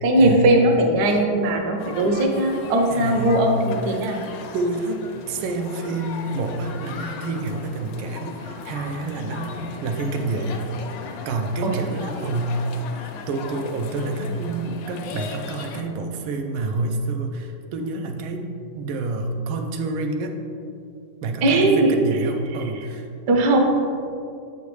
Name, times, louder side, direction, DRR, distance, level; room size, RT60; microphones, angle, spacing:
voice 1, 0.0-4.2 11.6-11.8 21.4-21.9 23.3-23.6, right 1 dB, 65° right, 2 dB, 1.1 m, -19 dB
sound 1, 1.8-15.8, left 4 dB, 75° left, 1.2 m, -37 dB
voice 2, 2.9-3.5 3.9-4.1 4.5-10.6 11.2-12.7 13.3-18.5 18.7-20.4 21.2-23.1, right 2 dB, 85° right, 4 dB, 1.4 m, -28 dB
7.5 x 5.1 x 3.1 m, 2.5 s
omnidirectional pair, 2.2 m